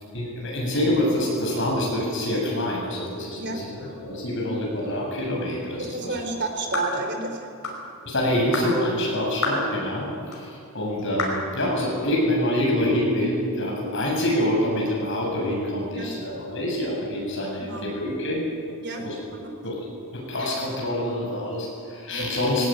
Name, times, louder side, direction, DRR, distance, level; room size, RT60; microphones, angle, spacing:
voice 1, 0.1-3.8 4.0-6.4 8.0-18.4 19.0-19.1 19.6-19.8 20.1-22.7, left 1 dB, 55° left, -3 dB, 8.0 m, -26 dB
voice 2, 5.8-7.5 10.1-10.2 15.9-16.1 17.6-17.9 18.8-19.0 19.3-19.5 22.1-22.3, right 2 dB, 50° right, 4 dB, 3.3 m, -31 dB
sound 1, 6.7-7.0 7.6-7.8 8.5-8.7 9.4-9.7 10.3-10.4 11.2-11.4, left 2 dB, 70° left, 5.4 m, -27 dB
21.0 x 18.0 x 9.3 m, 2.5 s
head